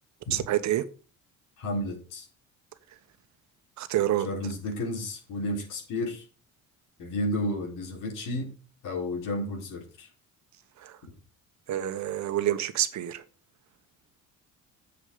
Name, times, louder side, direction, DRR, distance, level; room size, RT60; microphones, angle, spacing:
voice 1, 0.3-0.9 3.8-4.3 10.8-11.0 11.7-13.2, right 12 dB, 65° right, 1.2 m, -27 dB
voice 2, 1.6-2.3 4.2-6.2 7.0-8.5 8.8-10.1, left 1 dB, 85° left, 4.4 m, -32 dB
8.3 x 7.3 x 5.5 m
cardioid pair, 120°, 31 cm